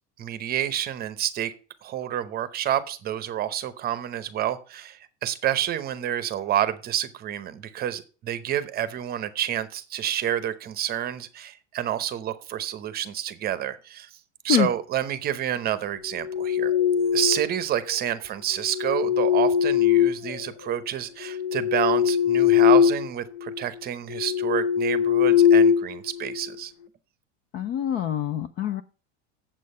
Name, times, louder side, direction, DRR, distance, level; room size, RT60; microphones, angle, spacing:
voice 1, 0.2-1.5 1.8-14.1 14.4-16.7 17.1-26.7, right 11 dB, 25° right, 13 dB, 0.8 m, -29 dB
sound 1, 16.1-17.6 18.6-20.7 21.2-23.1 23.4-23.6 24.1-26.5, left 9 dB, 50° left, 0.8 m, -21 dB
voice 2, 27.5-28.8, left 10 dB, 30° left, 12 dB, 0.4 m, -25 dB
8.5 x 7.5 x 5.4 m, 0.36 s
supercardioid pair, 150°, 35 cm